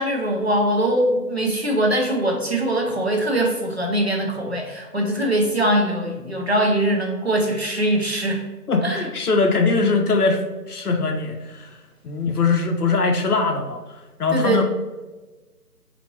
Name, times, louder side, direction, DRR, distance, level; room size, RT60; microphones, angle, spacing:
voice 1, 0.0-8.4 8.8-9.0 14.3-14.6, right 1 dB, 40° right, 0 dB, 0.6 m, -22 dB
voice 2, 8.7-11.8 12.0-14.6, left 4 dB, 65° left, 4 dB, 0.6 m, -21 dB
4.2 x 2.7 x 3.0 m, 1.2 s
figure-of-eight pair, 170°, 48 cm